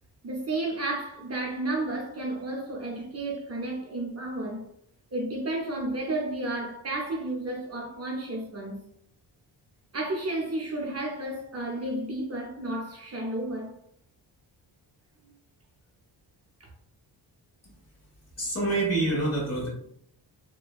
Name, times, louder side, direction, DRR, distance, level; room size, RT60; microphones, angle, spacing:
voice 1, 0.2-4.7 5.1-8.8 9.9-13.7 16.6-16.7, right 2 dB, 35° right, 0.6 m, -32 dB
voice 2, 18.4-19.7, right 2 dB, 35° left, 1.1 m, -26 dB
2.5 x 2.1 x 2.3 m
cardioid pair, 75°, 42 cm